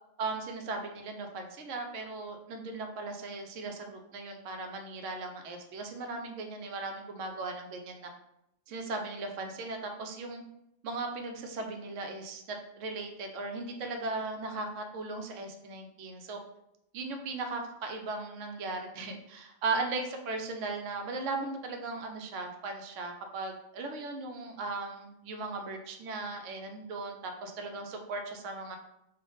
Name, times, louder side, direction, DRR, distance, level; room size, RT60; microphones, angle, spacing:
voice 1, 0.2-8.1 8.7-10.4 10.8-16.4 16.9-28.8, right 3 dB, 85° right, 4 dB, 1.0 m, -37 dB
3.3 x 2.4 x 3.8 m, 0.83 s
omnidirectional pair, 1.2 m